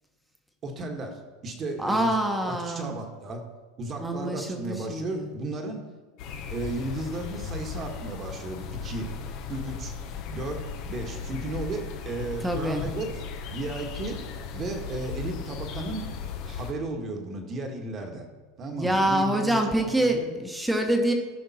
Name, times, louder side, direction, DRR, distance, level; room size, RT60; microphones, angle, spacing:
voice 1, 0.6-2.2 2.5-3.4 3.8-5.8 6.5-9.1 9.5-9.9 10.3-14.2 14.5-16.1 16.4-18.3 18.6-20.3, right 2 dB, 35° right, 4 dB, 1.6 m, -34 dB
voice 2, 1.8-2.9 4.0-5.3 12.4-12.8 18.8-21.1, right 1 dB, 5° right, 3 dB, 1.3 m, -26 dB
sound 1, 6.2-16.7, left 6 dB, 55° left, 1.1 m, -37 dB
13.5 x 5.1 x 4.3 m, 1.3 s
hypercardioid pair, 110°, 0 cm